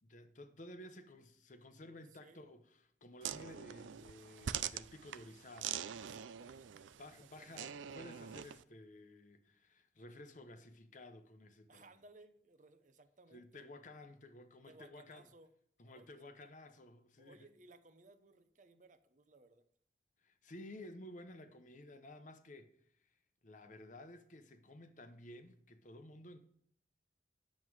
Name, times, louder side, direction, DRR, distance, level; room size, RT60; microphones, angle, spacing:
voice 1, 0.0-2.6 3.0-6.1 7.0-11.9 13.3-15.3 15.8-17.4 20.2-22.7 23.4-26.4, left 1 dB, 40° left, 0.8 m, -54 dB
voice 2, 2.1-2.4 6.0-7.8 11.7-13.6 14.7-15.5 15.8-16.5 17.2-19.6 20.8-20.9, right 2 dB, 40° right, 0.7 m, -62 dB
sound 1, 3.2-8.6, right 9 dB, 85° right, 0.4 m, -44 dB
9.5 x 7.5 x 4.7 m
head